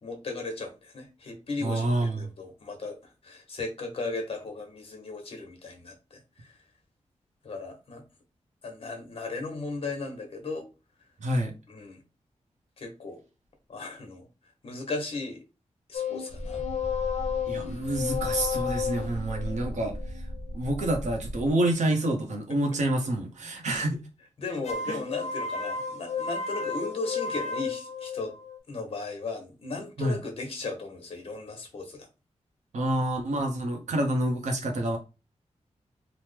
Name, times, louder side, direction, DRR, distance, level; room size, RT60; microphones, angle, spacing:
voice 1, 0.0-3.0 3.2-6.5 7.4-8.0 8.6-10.6 11.7-12.0 12.8-13.2 13.7-14.3 14.6-15.4 15.9-16.6 18.3-18.5 22.5-22.6 23.7-23.9 24.4-28.3 28.7-32.1, left 3 dB, 50° left, 0.9 m, -36 dB
voice 2, 1.6-2.2 11.2-11.5 17.5-20.0 20.5-24.0 24.9-25.0 30.0-30.2 32.7-35.0, right 1 dB, 85° right, 0.8 m, -27 dB
sound 1, 15.9-21.3 24.6-28.6, left 6 dB, 70° left, 0.5 m, -33 dB
sound 2, 16.3-21.5, equal, 10° left, 0.6 m, -37 dB
3.0 x 2.0 x 3.4 m
wide cardioid pair, 180°, 12 cm